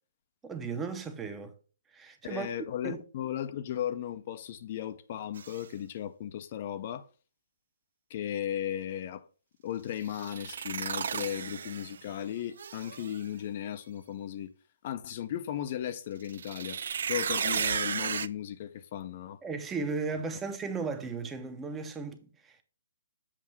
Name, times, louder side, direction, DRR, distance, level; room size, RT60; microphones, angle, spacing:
voice 1, 0.4-1.5 1.9-2.5 2.8-3.0 19.4-22.6, right 4 dB, 10° right, 0.7 m, -36 dB
voice 2, 2.2-7.1 8.1-9.2 9.6-14.5 14.8-16.8 17.1-19.4, left 10 dB, 40° left, 0.5 m, -36 dB
sound 1, 5.3-5.6 10.0-12.1 12.6-13.2 16.2-18.3, right 7 dB, 65° right, 0.3 m, -34 dB
7.4 x 2.8 x 5.5 m
hypercardioid pair, 150°, 0 cm